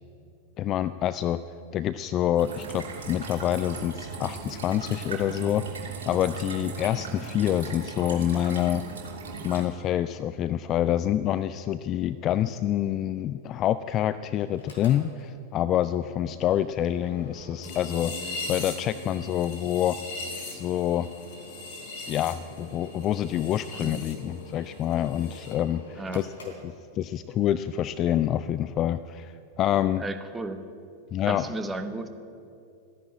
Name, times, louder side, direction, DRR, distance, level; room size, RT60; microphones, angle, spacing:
voice 1, 0.6-1.4 1.7-8.8 9.4-20.0 20.5-21.1 22.1-26.3 26.9-30.0 31.1-31.5, left 11 dB, 35° left, 14 dB, 0.4 m, -27 dB
sound 1, 2.4-9.6, right 5 dB, 60° right, 3.0 m, -38 dB
Mechanical fan, 14.5-27.3, left 2 dB, 65° left, 3.7 m, -48 dB
sound 2, 17.6-24.1 24.4-25.6, left 3 dB, 50° left, 3.2 m, -39 dB
voice 2, 26.0-26.3 30.0-30.6 31.2-32.1, right 2 dB, 10° right, 8 dB, 1.1 m, -34 dB
15.0 x 11.0 x 8.8 m, 2.6 s
figure-of-eight pair, 90°, 0 cm